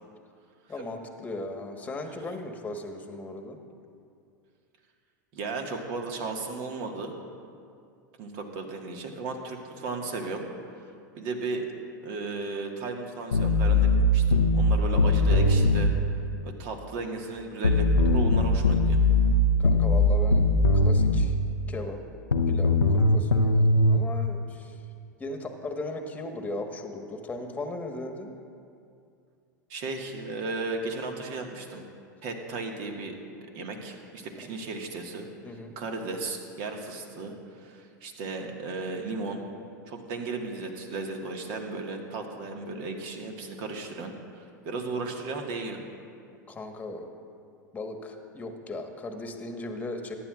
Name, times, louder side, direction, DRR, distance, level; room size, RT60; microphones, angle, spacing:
voice 1, 0.7-3.6 19.6-20.5 20.7-21.3 21.7-22.0 22.5-24.7 25.2-28.3 35.4-35.7 46.5-47.1 47.7-50.1, left 2 dB, 15° left, 4 dB, 1.4 m, -37 dB
voice 2, 5.3-7.1 8.2-10.5 11.2-11.7 12.0-15.9 16.4-19.0 29.7-31.9 32.2-33.2 33.5-35.3 35.8-39.4 39.9-45.8, right 3 dB, 50° right, 3 dB, 1.7 m, -35 dB
sound 1, 13.3-15.9 17.6-21.3 22.3-24.0, left 2 dB, 80° left, 0.7 m, -21 dB
23.0 x 11.0 x 2.5 m, 2.4 s
figure-of-eight pair, 85°, 10 cm